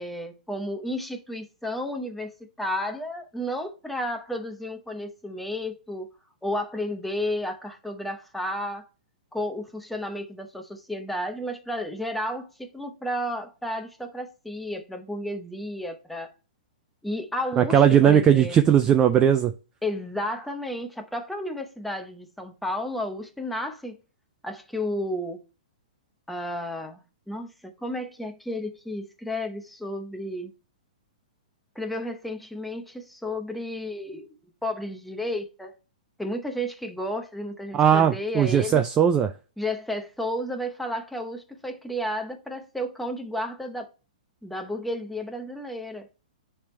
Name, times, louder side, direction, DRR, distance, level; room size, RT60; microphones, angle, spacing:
voice 1, 0.0-6.1 6.4-8.9 9.3-16.3 17.0-18.6 19.8-24.0 24.4-25.4 26.3-30.5 31.8-34.4 34.6-35.8 36.2-38.8 39.6-43.9 44.4-46.1, left 1 dB, ahead, 0.7 m, -32 dB
voice 2, 17.6-19.5 37.7-39.3, right 9 dB, 15° right, 0.3 m, -18 dB
10.0 x 3.4 x 3.2 m
hypercardioid pair, 155°, 5 cm